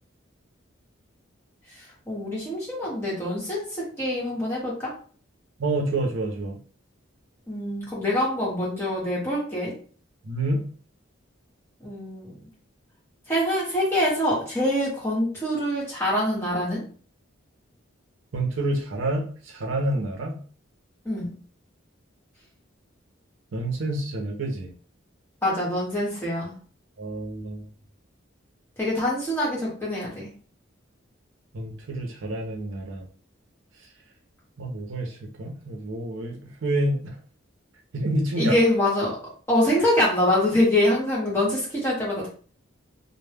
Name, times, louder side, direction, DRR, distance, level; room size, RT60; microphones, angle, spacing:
voice 1, 2.1-3.6 4.0-4.9 7.5-9.7 11.8-12.3 13.3-16.8 21.0-21.3 25.4-26.5 28.8-30.3 38.4-39.2 39.5-42.3, left 1 dB, 10° left, -6 dB, 0.9 m, -24 dB
voice 2, 5.6-6.6 10.2-10.7 18.3-20.4 23.5-24.7 27.0-27.7 31.5-33.1 34.6-37.2 37.9-38.6, right 1 dB, 70° right, 1 dB, 0.6 m, -28 dB
2.1 x 2.0 x 3.3 m, 0.41 s
head